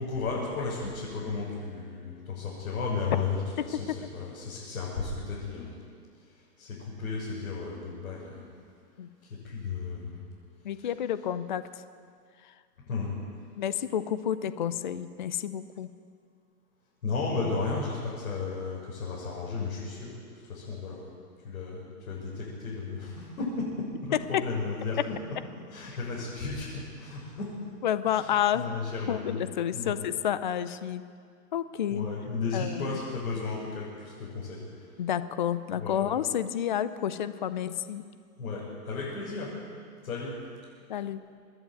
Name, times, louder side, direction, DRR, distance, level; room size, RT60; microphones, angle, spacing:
voice 1, 0.0-5.7 6.6-8.5 9.4-10.2 10.8-10.9 12.9-13.1 17.0-20.1 20.4-21.0 21.4-23.7 24.0-25.2 25.7-27.5 28.1-29.4 29.7-30.0 31.9-34.8 35.7-36.1 38.4-39.5 40.0-40.4, left 4 dB, 65° left, -6 dB, 7.2 m, -34 dB
voice 2, 10.6-11.8 13.6-15.9 24.3-24.4 27.8-28.6 29.1-31.0 31.5-32.1 32.5-32.9 35.0-38.0 40.9-41.2, left 10 dB, 30° left, 13 dB, 0.5 m, -30 dB
25.5 x 11.0 x 9.4 m, 2.1 s
hypercardioid pair, 160°, 48 cm